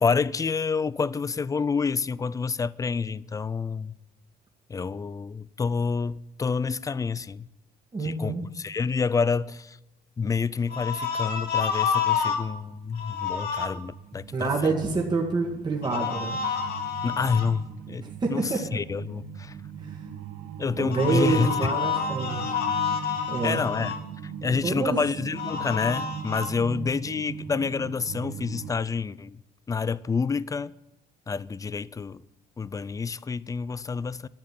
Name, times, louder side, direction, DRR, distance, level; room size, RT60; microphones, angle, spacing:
voice 1, 0.0-3.9 4.7-7.5 8.0-9.8 10.2-14.5 17.0-19.6 20.6-21.7 23.4-23.9 24.2-29.4 29.7-30.7 31.3-32.2 32.6-34.3, left 5 dB, 20° left, 0.4 m, -28 dB
voice 2, 7.9-8.4 14.3-16.4 18.2-18.8 19.8-20.0 20.8-23.0 23.3-23.6 24.6-25.0, right 4 dB, 25° right, 1.9 m, -27 dB
sound 1, 10.7-12.4 12.9-13.7 15.8-17.5 20.9-24.0 25.3-26.5, left 7 dB, 65° left, 2.0 m, -29 dB
sound 2, 12.5-28.7, right 8 dB, 80° right, 1.6 m, -40 dB
11.5 x 7.6 x 9.4 m
cardioid pair, 110°, 17 cm